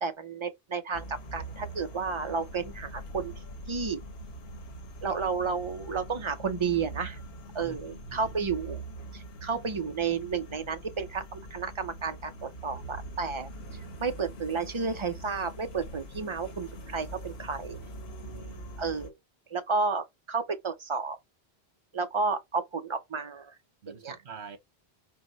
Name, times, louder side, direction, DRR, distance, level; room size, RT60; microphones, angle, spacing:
voice 1, 0.0-3.3 3.7-4.0 5.0-7.2 7.5-8.8 9.1-13.5 14.0-17.8 18.8-19.1 19.5-21.2 21.9-23.5 23.9-24.2, right 5 dB, 35° right, 0.5 m, -32 dB
sound 1, 0.9-19.1, right 1 dB, 70° left, 1.1 m, -43 dB
voice 2, 7.6-8.3 13.6-14.0 18.2-18.7 23.8-24.6, right 6 dB, 80° right, 1.2 m, -47 dB
4.6 x 2.1 x 3.9 m
omnidirectional pair, 1.1 m